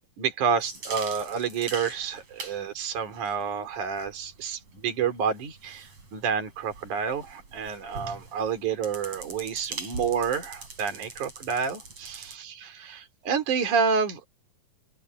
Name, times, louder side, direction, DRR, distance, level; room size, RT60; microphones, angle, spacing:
voice 1, 0.2-14.3, right 6 dB, 60° right, 4.8 m, -29 dB
sound 1, 0.6-12.4, right 3 dB, 45° right, 6.9 m, -43 dB
open air
omnidirectional pair, 3.9 m